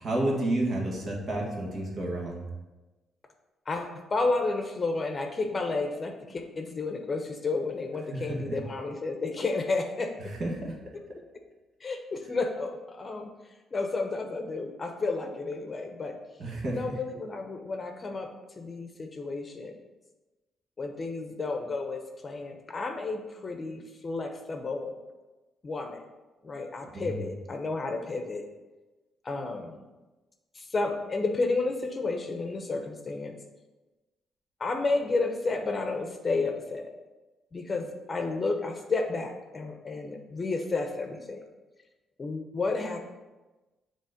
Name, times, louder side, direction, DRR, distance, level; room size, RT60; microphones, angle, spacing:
voice 1, 0.0-2.5 8.1-8.6 10.3-10.8 16.4-16.8 26.9-27.3, right 1 dB, 50° right, -2 dB, 1.7 m, -30 dB
voice 2, 3.7-10.1 11.8-13.3 13.7-16.1 16.7-18.3 18.6-19.7 20.8-24.9 25.6-26.0 26.4-28.4 29.2-29.8 30.5-33.3 34.6-36.9 37.5-41.4 42.2-43.0, left 3 dB, 35° left, 4 dB, 0.8 m, -31 dB
7.3 x 3.1 x 5.0 m, 1.1 s
cardioid pair, 90°, 0 cm